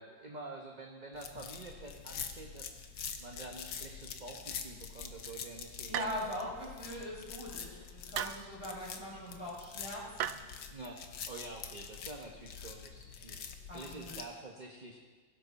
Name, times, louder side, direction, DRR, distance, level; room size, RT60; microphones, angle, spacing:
voice 1, 0.0-6.2 10.7-15.0, right 2 dB, 30° right, 1 dB, 1.0 m, -48 dB
sound 1, 1.1-14.2, left 7 dB, 80° left, 1.7 m, -46 dB
voice 2, 5.9-10.4 13.7-14.2, left 1 dB, 15° left, -5 dB, 4.8 m, -41 dB
sound 2, 5.9-6.5 8.1-8.5 10.2-10.3, right 10 dB, 70° right, 0.8 m, -36 dB
17.5 x 16.0 x 4.2 m, 1.5 s
omnidirectional pair, 2.0 m